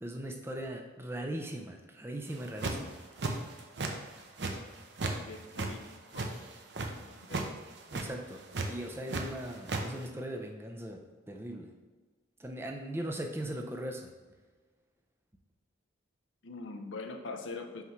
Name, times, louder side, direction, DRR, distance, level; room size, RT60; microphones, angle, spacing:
voice 1, 0.0-2.9 7.9-8.4 8.7-11.7 12.4-14.1, right 1 dB, 10° right, 3 dB, 0.5 m, -39 dB
sound 1, 2.3-2.9 3.2-3.9 4.2-5.2 5.4-6.9 7.2-7.5 7.8-8.1 8.5-9.2 9.5-9.8, right 3 dB, 60° right, 0.7 m, -34 dB
voice 2, 5.3-5.8 6.1-6.4 6.9-7.5 16.4-17.8, left 3 dB, 80° left, 6 dB, 0.6 m, -43 dB
5.8 x 5.7 x 3.1 m, 1.4 s
head